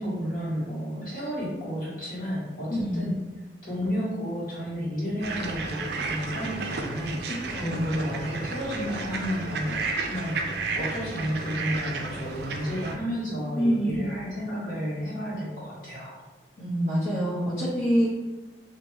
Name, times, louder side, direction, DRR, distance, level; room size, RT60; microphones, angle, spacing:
voice 1, 0.0-3.2 3.6-16.2, equal, 50° left, -7 dB, 1.3 m, -32 dB
voice 2, 2.7-3.0 7.2-7.8 13.5-14.1 16.6-18.1, equal, 80° left, -11 dB, 1.1 m, -26 dB
sound 1, 5.2-13.0, right 3 dB, 60° right, 0.4 m, -32 dB
3.1 x 2.5 x 3.2 m, 1.2 s
head